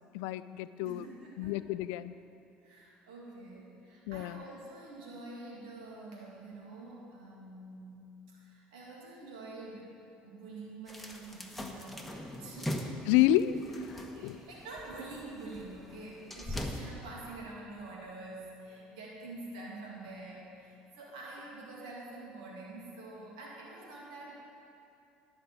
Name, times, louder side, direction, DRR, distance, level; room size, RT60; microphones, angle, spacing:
voice 1, 0.1-1.0 1.4-2.1 4.1-4.4 13.1-13.5 14.2-14.4, left 14 dB, 80° left, 15 dB, 0.4 m, -28 dB
voice 2, 0.8-1.6 2.6-13.4 13.9-24.4, right 2 dB, 90° right, -3 dB, 2.2 m, -47 dB
sound 1, 10.9-16.9, left 1 dB, ahead, 1.3 m, -41 dB
11.5 x 6.0 x 8.7 m, 2.8 s
supercardioid pair, 75°, 4 cm